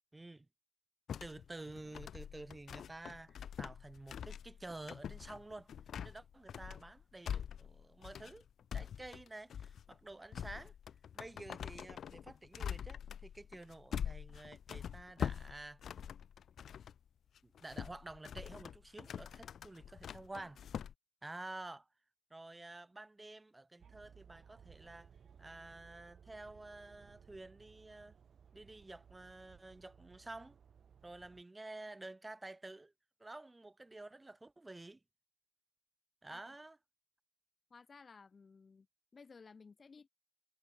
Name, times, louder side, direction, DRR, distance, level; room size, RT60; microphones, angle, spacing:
voice 1, 0.1-0.5 1.2-5.7 6.0-8.4 8.7-10.7 11.1-16.0 17.4-20.6 21.2-21.9 22.3-25.1 25.4-28.2 28.5-30.6 31.0-32.9 33.2-35.0 36.2-36.8, right 2 dB, 25° right, 1.4 m, -50 dB
sound 1, 1.1-17.0 17.4-20.9, left 8 dB, 80° left, 0.3 m, -45 dB
sound 2, 23.8-31.4, right 7 dB, 70° right, 0.8 m, -61 dB
voice 2, 37.7-38.9 39.1-40.1, left 5 dB, 50° left, 1.4 m, -57 dB
supercardioid pair, 50°, 0 cm